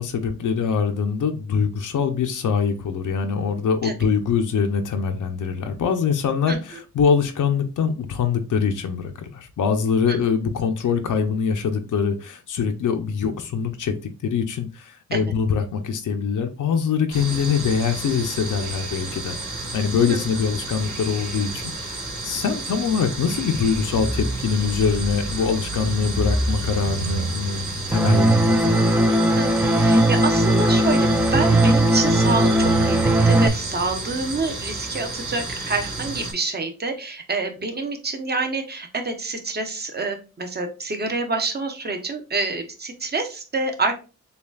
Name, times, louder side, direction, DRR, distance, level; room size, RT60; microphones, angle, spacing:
voice 1, 0.0-28.7, left 6 dB, 85° left, 0.6 m, -23 dB
sound 1, 17.1-36.3, right 2 dB, 70° right, 2.3 m, -30 dB
sound 2, 27.9-33.5, right 1 dB, 5° right, 0.4 m, -18 dB
voice 2, 29.4-43.9, right 3 dB, 35° right, 0.9 m, -27 dB
6.7 x 2.4 x 2.3 m
wide cardioid pair, 130°, 30 cm